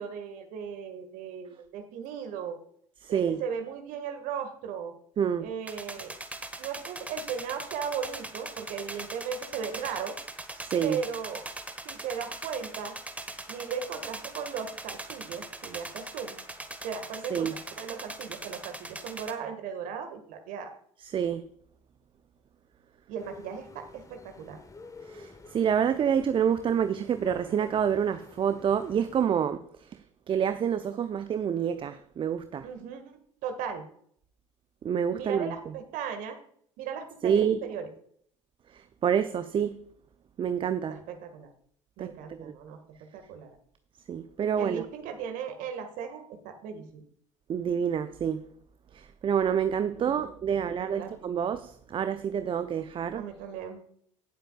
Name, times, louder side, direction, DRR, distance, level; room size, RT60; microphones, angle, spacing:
voice 1, 0.0-2.6 3.1-4.9 5.4-6.1 6.6-10.1 10.8-11.4 11.8-12.9 13.5-16.4 16.8-17.5 17.8-20.7 23.1-24.6 32.6-33.8 35.1-36.4 36.8-37.9 40.9-41.5 42.0-42.8 43.1-43.6 44.6-47.0 49.9-50.6 50.9-51.1 53.1-53.8, right 7 dB, 55° right, 1.9 m, -37 dB
voice 2, 3.0-3.4 5.2-5.5 10.6-11.0 17.3-17.6 21.0-21.4 25.1-32.7 34.8-35.5 37.2-37.6 38.7-39.8 40.4-41.0 42.0-42.5 44.1-44.8 47.5-48.4 48.9-53.2, right 8 dB, 30° right, 0.7 m, -28 dB
sound 1, 5.7-19.3, right 2 dB, 10° right, 1.4 m, -41 dB
sound 2, 23.2-29.3, left 3 dB, 20° left, 1.5 m, -50 dB
17.5 x 7.8 x 2.4 m
figure-of-eight pair, 60°, 16 cm